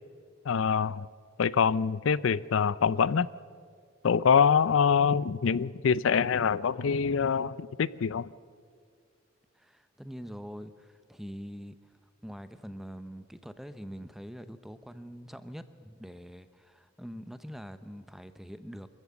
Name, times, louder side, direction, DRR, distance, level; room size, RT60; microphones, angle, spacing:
voice 1, 0.4-1.1 1.4-3.3 4.0-8.3, left 6 dB, 85° left, 19 dB, 0.4 m, -25 dB
voice 2, 9.5-11.9 12.2-18.9, equal, ahead, 11 dB, 0.7 m, -44 dB
25.0 x 14.0 x 8.6 m, 2.1 s
head